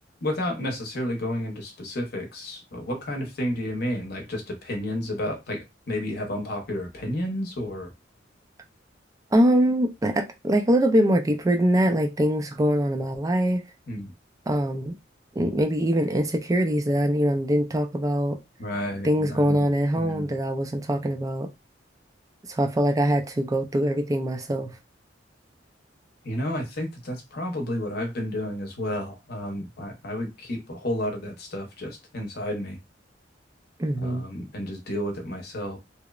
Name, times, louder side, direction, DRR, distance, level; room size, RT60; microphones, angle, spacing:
voice 1, 0.2-7.9 13.9-14.1 18.6-19.7 19.9-20.3 26.2-32.8 34.0-35.8, left 1 dB, 55° left, 0.7 m, -31 dB
voice 2, 9.3-13.6 14.5-14.9 15.4-18.4 19.0-21.5 22.5-24.8 33.8-34.2, equal, 20° right, 0.3 m, -23 dB
2.8 x 2.0 x 2.3 m
head